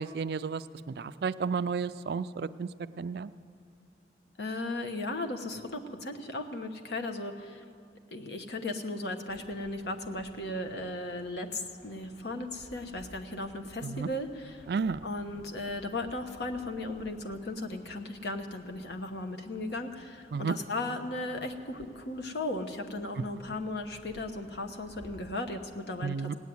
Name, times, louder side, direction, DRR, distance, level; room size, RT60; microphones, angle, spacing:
voice 1, 0.0-2.7 3.0-3.3 13.8-14.1 14.7-15.0 20.3-20.6 23.2-23.3 26.0-26.4, right 5 dB, 60° right, 14 dB, 0.3 m, -32 dB
voice 2, 4.4-7.6 8.1-14.7 15.0-26.4, left 2 dB, 70° left, 5 dB, 1.1 m, -36 dB
sound 1, 9.3-25.3, right 1 dB, 40° left, 5.3 m, -57 dB
17.5 x 8.3 x 9.3 m, 2.4 s
head